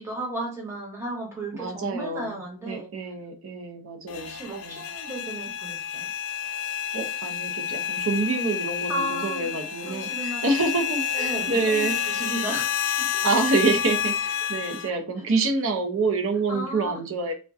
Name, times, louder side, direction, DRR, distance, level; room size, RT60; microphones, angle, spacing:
voice 1, 0.0-2.9 4.1-6.1 8.9-9.5 9.9-10.4 11.1-13.1 14.4-14.5 14.9-15.0 16.5-17.0, right 1 dB, 10° right, -2 dB, 0.7 m, -34 dB
voice 2, 1.5-2.4 2.7-4.8 6.9-12.0 13.2-17.3, right 3 dB, 80° right, 4 dB, 0.5 m, -27 dB
sound 1, 4.1-14.9, left 8 dB, 80° left, 0.4 m, -29 dB
2.3 x 2.1 x 2.5 m, 0.33 s
head